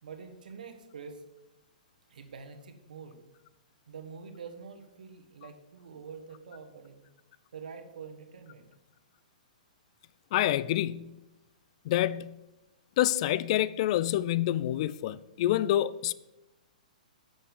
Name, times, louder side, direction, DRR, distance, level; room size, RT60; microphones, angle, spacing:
voice 1, 0.0-1.2 2.1-3.2 3.9-7.0 7.5-8.7, right 5 dB, 75° right, 1.4 m, -46 dB
voice 2, 10.3-11.1 11.9-12.3 13.0-16.1, left 13 dB, 45° left, 0.4 m, -27 dB
9.2 x 6.3 x 5.4 m
hypercardioid pair, 135°, 4 cm